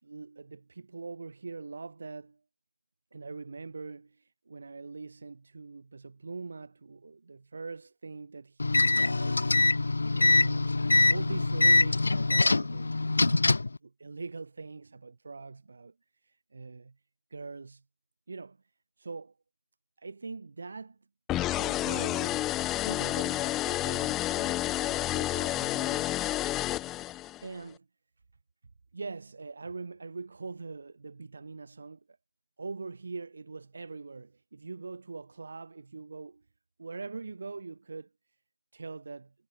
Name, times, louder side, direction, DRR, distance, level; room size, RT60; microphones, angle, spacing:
voice 1, 0.0-2.4 3.1-10.7 11.1-13.5 13.8-15.9 16.2-17.0 17.3-17.8 18.3-18.6 19.0-19.3 20.0-21.0 21.6-22.5 22.8-26.3 27.4-27.9 28.9-32.0 32.6-36.4 36.8-38.1 38.7-39.3, right 4 dB, 65° right, 5.8 m, -43 dB
sound 1, 8.6-13.8, left 3 dB, 80° left, 0.4 m, -24 dB
sound 2, 21.3-27.5, left 15 dB, 10° left, 0.7 m, -30 dB
figure-of-eight pair, 170°, 0 cm